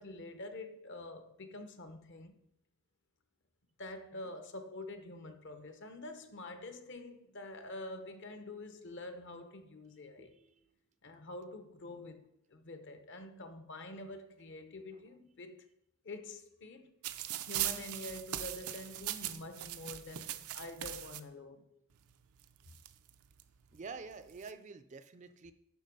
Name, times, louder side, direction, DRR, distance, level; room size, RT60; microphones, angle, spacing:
voice 1, 0.0-2.4 3.8-10.3 11.0-15.7 16.0-16.9 17.5-21.7, left 2 dB, 55° left, 0.9 m, -47 dB
voice 2, 10.2-10.7 23.7-25.5, right 4 dB, 35° right, 0.4 m, -48 dB
sound 1, 17.0-21.2 22.1-22.2 22.4-23.4 24.1-24.5, right 13 dB, 90° right, 0.6 m, -40 dB
9.3 x 5.8 x 5.3 m
head